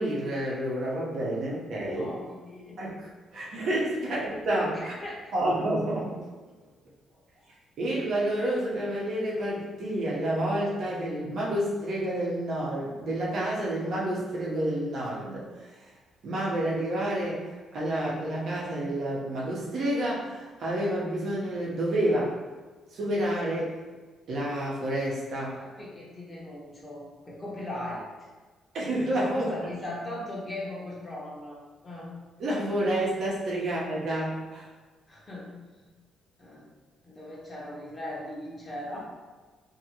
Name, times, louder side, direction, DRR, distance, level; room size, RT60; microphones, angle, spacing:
voice 1, 0.0-2.1 2.8-4.9 5.3-6.2 7.8-15.5 16.2-17.4 17.7-22.3 22.9-23.7 24.3-25.6 28.7-29.5 32.4-34.7, right 1 dB, 65° right, -5 dB, 0.9 m, -29 dB
voice 2, 1.3-2.8 4.0-4.2 4.7-5.3 7.1-7.2 25.6-28.0 29.3-32.1 33.6-33.7 35.1-35.9 36.4-36.7 37.0-39.0, left 1 dB, 25° left, -5 dB, 1.0 m, -39 dB
2.8 x 2.6 x 2.9 m, 1.3 s
cardioid pair, 90°, 0 cm